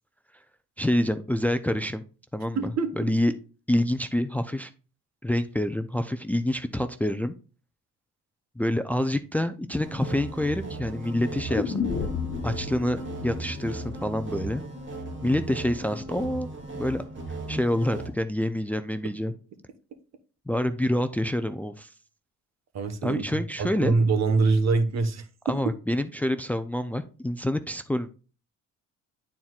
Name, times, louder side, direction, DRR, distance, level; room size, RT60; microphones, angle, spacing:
voice 1, 0.8-2.0 2.3-3.3 3.7-4.7 5.2-7.3 8.6-11.8 12.4-14.6 15.2-17.0 17.5-19.3 20.5-21.9 23.0-23.9 25.5-28.1, left 1 dB, 5° left, 10 dB, 0.5 m, -27 dB
voice 2, 2.5-3.1 22.7-25.2, right 4 dB, 60° right, 8 dB, 1.3 m, -24 dB
sound 1, 9.8-18.1, right 2 dB, 40° right, 2.2 m, -37 dB
sound 2, 11.5-15.5 15.8-15.9, left 6 dB, 40° left, 1.2 m, -33 dB
11.0 x 4.4 x 2.4 m, 0.36 s
cardioid pair, 90°, 30 cm